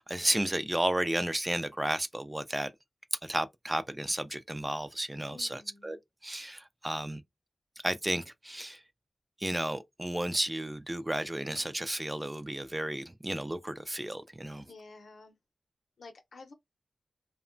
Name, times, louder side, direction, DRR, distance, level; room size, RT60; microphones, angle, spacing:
voice 1, 0.0-2.7 3.2-6.0 6.2-7.2 7.8-8.8 9.4-14.7, right 1 dB, 15° right, 0.3 m, -33 dB
voice 2, 5.3-6.0 14.7-15.4 16.0-16.5, left 3 dB, 75° left, 0.6 m, -51 dB
2.8 x 2.1 x 2.5 m
wide cardioid pair, 80°, 0 cm